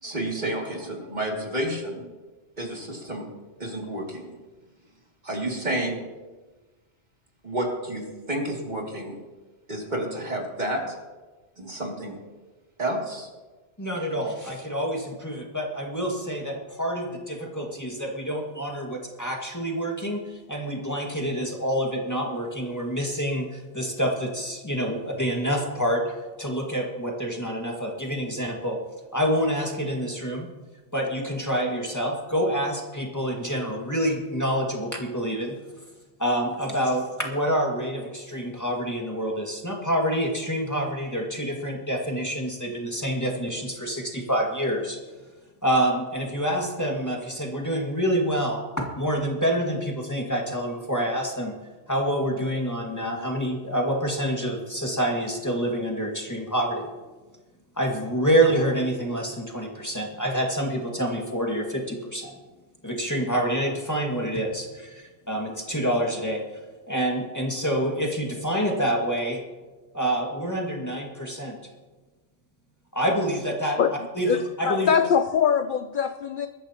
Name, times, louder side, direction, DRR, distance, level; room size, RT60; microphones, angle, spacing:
voice 1, 0.0-2.1 2.6-3.3 3.6-4.3 5.2-6.0 7.4-9.2 9.7-10.9 11.6-12.2 12.8-13.3, right 1 dB, 40° right, -1 dB, 2.7 m, -30 dB
voice 2, 13.8-28.8 29.1-30.5 30.9-35.6 36.2-45.0 45.6-51.5 51.9-56.9 57.8-62.4 62.8-66.4 66.9-69.4 69.9-71.6 72.9-73.8 74.1-74.9, equal, 15° left, -1 dB, 1.9 m, -27 dB
voice 3, 74.2-76.5, left 7 dB, 55° left, 10 dB, 0.6 m, -23 dB
21.5 x 13.5 x 2.9 m, 1.2 s
omnidirectional pair, 1.2 m